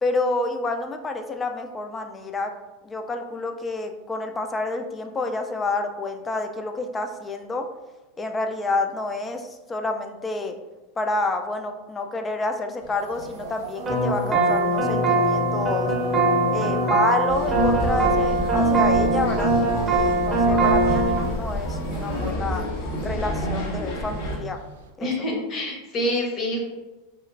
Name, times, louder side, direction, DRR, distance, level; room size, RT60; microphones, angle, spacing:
voice 1, 0.0-2.5 2.8-7.7 8.2-10.6 11.0-15.9 16.5-19.5 19.8-22.6 23.0-24.6 25.0-25.1, left 2 dB, 20° left, 5 dB, 0.3 m, -28 dB
sound 1, 12.8-24.9, right 3 dB, 75° right, 0.3 m, -38 dB
sound 2, 13.9-21.2, right 2 dB, 25° right, 0.6 m, -21 dB
sound 3, 17.3-24.4, equal, 60° left, 0.7 m, -29 dB
voice 2, 25.0-26.6, left 1 dB, 35° left, -1 dB, 0.9 m, -26 dB
2.8 x 2.4 x 2.5 m, 1.1 s
hypercardioid pair, 105°, 0 cm